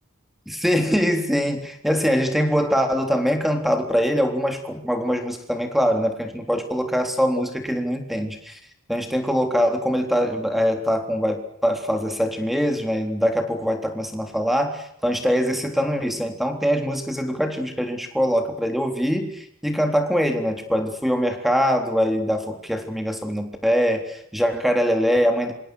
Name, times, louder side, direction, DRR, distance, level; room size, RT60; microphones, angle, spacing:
voice 1, 0.5-8.6 8.9-25.5, equal, ahead, 5 dB, 3.7 m, -23 dB
27.0 x 26.5 x 6.5 m, 0.72 s
head